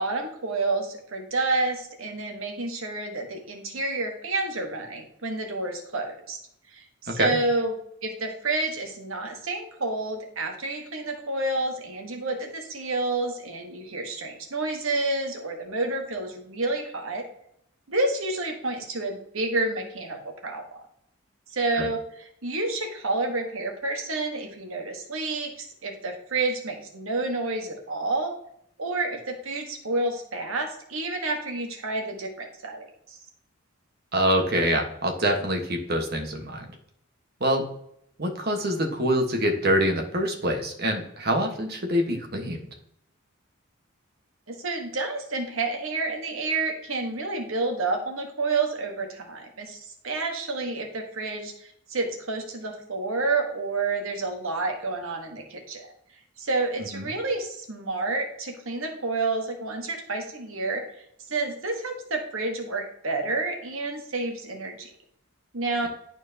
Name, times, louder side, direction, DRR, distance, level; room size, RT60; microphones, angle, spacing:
voice 1, 0.0-6.4 6.7-7.7 8.0-17.2 17.9-20.8 21.5-28.3 28.8-33.2 44.5-55.9 56.4-60.8 61.3-64.9 65.5-65.9, right 3 dB, 75° right, 3 dB, 1.3 m, -29 dB
voice 2, 34.1-36.6 37.4-37.6 38.2-42.6 56.9-57.1, equal, 50° right, 3 dB, 1.3 m, -25 dB
11.0 x 4.5 x 2.8 m, 0.71 s
head